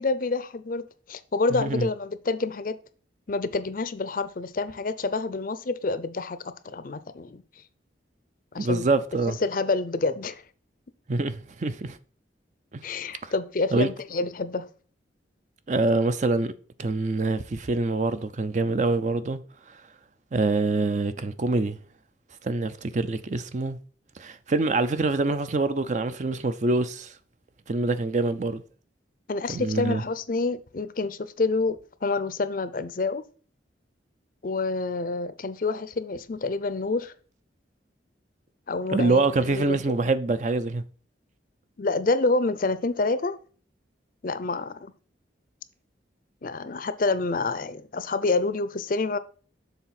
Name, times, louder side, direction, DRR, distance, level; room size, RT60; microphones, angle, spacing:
voice 1, 0.0-2.8 3.3-6.4 6.6-7.4 8.5-8.9 9.4-10.4 12.8-14.7 29.3-33.2 34.4-37.1 38.7-39.8 41.8-43.3 44.2-44.9 46.4-49.2, left 3 dB, 45° left, 0.5 m, -28 dB
voice 2, 1.5-1.9 8.6-9.4 11.1-12.0 12.7-12.8 13.2-13.3 13.7-13.9 15.7-16.5 16.8-19.4 20.3-21.8 22.4-23.8 24.2-27.1 27.7-28.6 29.5-30.0 38.9-40.8, right 3 dB, 40° right, 0.5 m, -25 dB
7.1 x 3.9 x 5.8 m
head